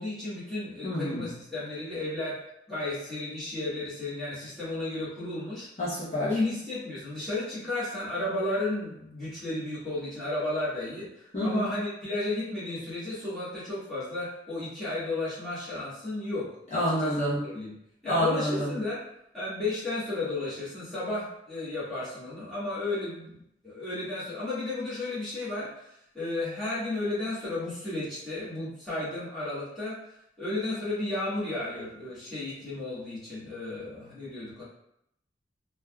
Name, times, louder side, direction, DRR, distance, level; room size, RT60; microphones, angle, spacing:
voice 1, 0.0-2.4 2.7-5.7 6.2-17.1 17.4-17.7 18.0-19.0 19.3-30.0 30.4-34.6, left 2 dB, ahead, -12 dB, 1.2 m, -33 dB
voice 2, 0.8-1.3 5.8-6.3 11.3-11.7 16.7-17.4 18.1-18.7, equal, 35° left, -9 dB, 0.7 m, -28 dB
3.3 x 2.3 x 2.2 m, 0.77 s
head